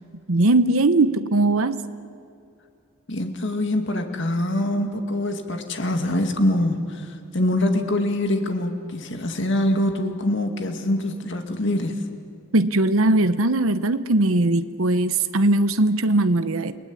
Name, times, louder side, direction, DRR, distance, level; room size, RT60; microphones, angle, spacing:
voice 1, 0.3-1.8 12.5-16.7, right 2 dB, 75° right, 11 dB, 0.9 m, -20 dB
voice 2, 3.1-12.0, left 1 dB, 60° left, 5 dB, 2.2 m, -24 dB
29.5 x 20.0 x 9.6 m, 2.3 s
head